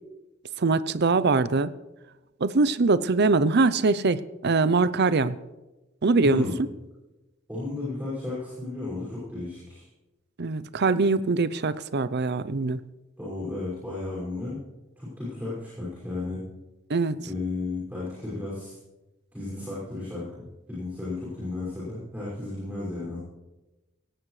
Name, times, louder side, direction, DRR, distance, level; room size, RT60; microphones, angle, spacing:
voice 1, 0.6-1.7 2.4-5.4 6.0-6.4 10.4-12.8 16.9-17.2, right 3 dB, 55° right, 15 dB, 0.6 m, -23 dB
voice 2, 6.2-6.6 7.5-9.9 13.2-14.6 15.0-16.4 17.2-18.8 19.3-20.3 20.7-23.2, left 2 dB, 10° right, -9 dB, 5.9 m, -33 dB
18.5 x 17.0 x 3.3 m, 1.1 s
head